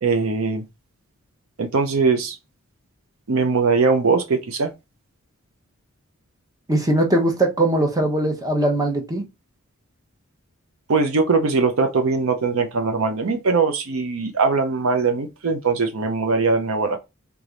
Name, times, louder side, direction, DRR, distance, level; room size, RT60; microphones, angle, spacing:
voice 1, 0.0-0.6 1.6-2.4 3.3-4.7 10.9-17.0, right 4 dB, 65° right, 0.6 m, -21 dB
voice 2, 6.7-9.2, right 1 dB, 15° right, 0.9 m, -20 dB
3.5 x 3.4 x 3.9 m
head